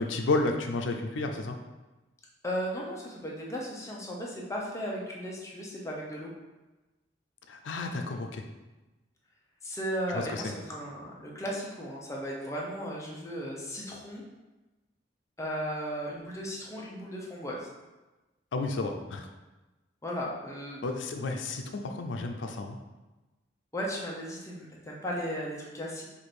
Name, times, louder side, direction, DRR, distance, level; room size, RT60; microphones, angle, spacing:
voice 1, 0.0-1.6 7.5-8.4 10.1-10.4 18.5-19.3 20.8-22.8, left 2 dB, 90° left, 4 dB, 0.5 m, -31 dB
voice 2, 2.4-6.3 9.6-14.2 15.4-17.7 20.0-20.8 23.7-26.0, equal, 15° left, -3 dB, 0.8 m, -36 dB
4.7 x 2.6 x 4.3 m, 1.1 s
head